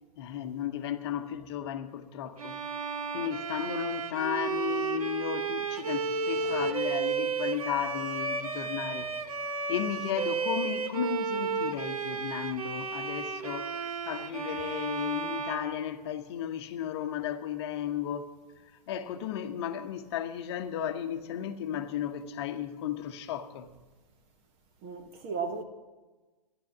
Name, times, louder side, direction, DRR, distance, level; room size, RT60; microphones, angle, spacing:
voice 1, 0.2-2.5 3.1-9.1 9.7-18.3 18.9-23.7, left 10 dB, 40° left, 1.1 m, -34 dB
Bowed string instrument, 2.4-16.5, right 5 dB, 60° right, 1.2 m, -33 dB
voice 2, 6.4-6.7 19.5-19.6 24.8-25.6, right 5 dB, 30° right, 1.3 m, -36 dB
14.0 x 11.0 x 7.3 m
figure-of-eight pair, 120°, 21 cm